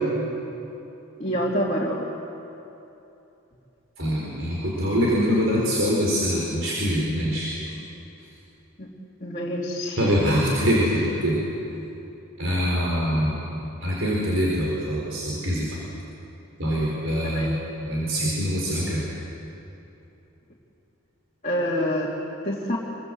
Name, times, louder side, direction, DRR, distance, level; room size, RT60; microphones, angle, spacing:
voice 1, 1.2-2.0 8.8-8.9 9.2-10.0 17.2-17.6 21.4-22.1 22.4-22.8, equal, 35° left, -5 dB, 2.6 m, -26 dB
voice 2, 4.0-7.5 10.0-11.4 12.4-13.5 13.8-15.7 16.6-19.0, equal, 65° right, -4 dB, 4.6 m, -24 dB
25.5 x 23.5 x 7.9 m, 2.9 s
head